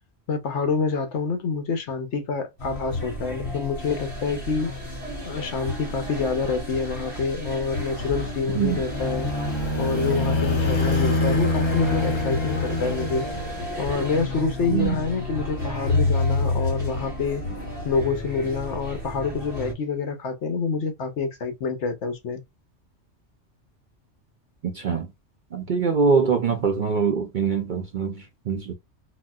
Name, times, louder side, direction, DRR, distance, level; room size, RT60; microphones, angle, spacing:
voice 1, 0.3-4.7 5.3-9.3 9.8-13.3 13.8-17.4 17.8-22.4, left 4 dB, 70° left, 1.0 m, -27 dB
sound 1, 2.6-19.7, left 2 dB, 50° left, 2.4 m, -31 dB
sound 2, 8.3-14.0, left 2 dB, 30° left, 0.7 m, -26 dB
voice 2, 24.7-25.1 25.5-28.7, right 5 dB, 55° right, 0.6 m, -23 dB
3.9 x 2.2 x 2.2 m
omnidirectional pair, 1.2 m